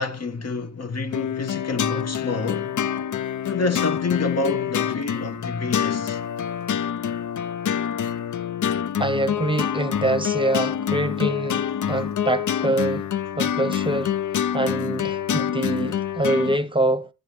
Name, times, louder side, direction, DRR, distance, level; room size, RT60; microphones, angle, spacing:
voice 1, 0.0-2.7 3.5-6.2, left 3 dB, 60° left, 1.0 m, -28 dB
sound 1, 1.1-16.6, left 9 dB, 80° left, 0.5 m, -26 dB
voice 2, 9.0-13.1 13.4-14.2 14.5-17.1, right 1 dB, 15° right, 0.7 m, -25 dB
11.0 x 9.6 x 3.2 m
wide cardioid pair, 110°, 30 cm